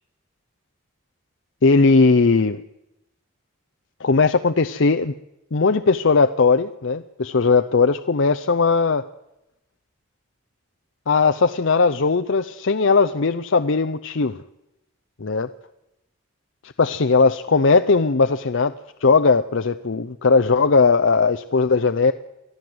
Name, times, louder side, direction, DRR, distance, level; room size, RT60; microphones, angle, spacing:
voice 1, 1.6-2.6 4.0-5.1 5.5-9.0 11.1-14.4 15.2-15.5 16.8-18.7 19.0-22.1, left 4 dB, 60° left, 9 dB, 0.6 m, -18 dB
24.5 x 15.0 x 7.9 m, 0.89 s
head